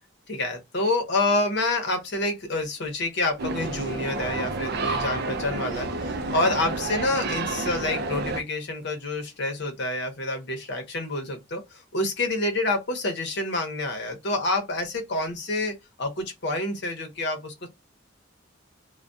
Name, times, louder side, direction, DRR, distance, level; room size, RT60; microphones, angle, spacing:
voice 1, 0.3-17.7, left 2 dB, 60° left, 0.8 m, -28 dB
sound 1, 3.4-8.4, right 3 dB, 50° right, 0.4 m, -30 dB
2.2 x 2.2 x 2.5 m
head